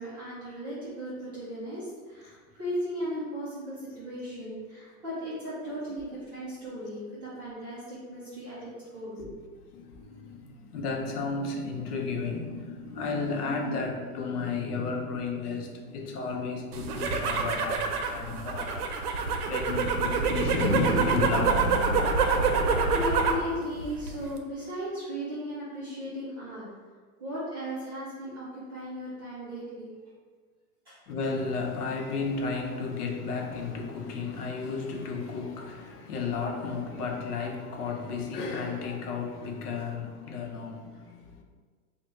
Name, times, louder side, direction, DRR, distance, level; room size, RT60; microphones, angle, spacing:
voice 1, 0.0-9.5 22.6-26.7 27.2-29.9 30.9-31.0, equal, 15° right, -11 dB, 0.3 m, -36 dB
voice 2, 9.7-22.9 31.1-41.4, left 4 dB, 80° left, 2 dB, 0.8 m, -33 dB
sound 1, 16.7-23.5 23.8-24.4, right 4 dB, 75° right, 0.6 m, -26 dB
3.4 x 2.2 x 3.9 m, 1.5 s
supercardioid pair, 155°, 45 cm